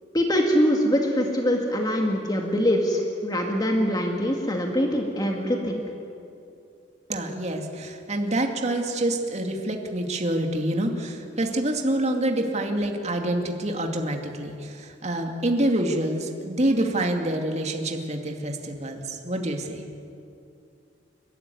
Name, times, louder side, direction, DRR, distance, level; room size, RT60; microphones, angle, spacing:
voice 1, 0.1-5.9, equal, 20° left, 1 dB, 2.0 m, -23 dB
voice 2, 7.1-19.8, right 1 dB, 40° right, 3 dB, 2.5 m, -27 dB
29.5 x 13.5 x 9.5 m, 2.6 s
head